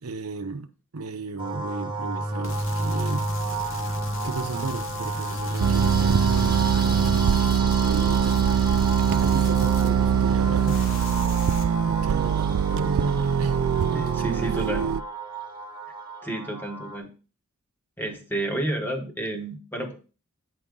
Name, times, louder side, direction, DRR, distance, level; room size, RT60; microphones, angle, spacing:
voice 1, 0.0-3.3 4.2-11.2 11.8-14.8, right 3 dB, 80° right, 0.7 m, -35 dB
sound 1, 1.4-17.0, right 2 dB, 20° right, 1.1 m, -31 dB
sound 2, 2.4-10.4 10.7-11.6, left 3 dB, 60° left, 1.0 m, -39 dB
sound 3, 5.6-15.0, right 8 dB, 65° right, 0.3 m, -22 dB
voice 2, 13.9-14.9 16.2-17.1 18.0-20.0, right 1 dB, 10° left, 1.1 m, -30 dB
8.5 x 5.0 x 3.7 m
head